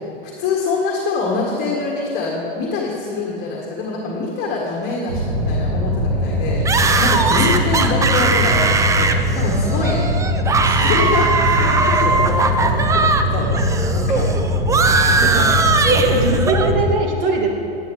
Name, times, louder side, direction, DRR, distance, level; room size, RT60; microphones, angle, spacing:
voice 1, 0.4-6.6 7.0-10.1 10.6-14.3 15.0-15.6 16.0-16.1, left 3 dB, 35° left, -2 dB, 1.5 m, -25 dB
sound 1, 5.1-16.8, equal, 90° right, 2.1 m, -21 dB
sound 2, 6.7-13.2 13.5-16.7, right 4 dB, 10° right, 0.4 m, -19 dB
voice 2, 15.8-17.6, right 3 dB, 60° right, 1 dB, 1.7 m, -20 dB
10.5 x 9.6 x 3.3 m, 2.9 s
hypercardioid pair, 95°, 30 cm